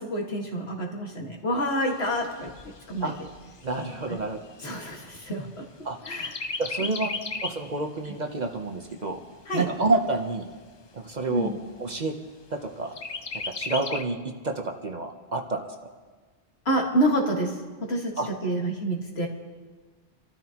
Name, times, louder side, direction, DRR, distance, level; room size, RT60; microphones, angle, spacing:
voice 1, 0.0-2.5 2.9-3.1 4.1-4.2 4.6-5.6 6.0-6.4 6.8-7.1 8.1-8.2 9.5-9.7 11.3-11.6 16.7-17.6 17.9-19.3, right 1 dB, 65° left, 0 dB, 2.1 m, -28 dB
Chirp tweet, 1.9-5.7 6.0-7.7 8.2-8.3 8.6-9.6 10.2-10.3 10.6-10.7 11.2-11.7 13.0-14.0, left 4 dB, 35° left, 0.4 m, -36 dB
voice 2, 3.6-4.4 5.8-6.0 6.6-7.1 7.4-9.2 9.5-10.4 10.9-11.5 11.8-12.1 12.5-12.9 13.6-15.7 18.2-18.3, right 3 dB, 40° right, 3 dB, 1.0 m, -28 dB
26.0 x 13.0 x 3.0 m, 1.4 s
omnidirectional pair, 1.2 m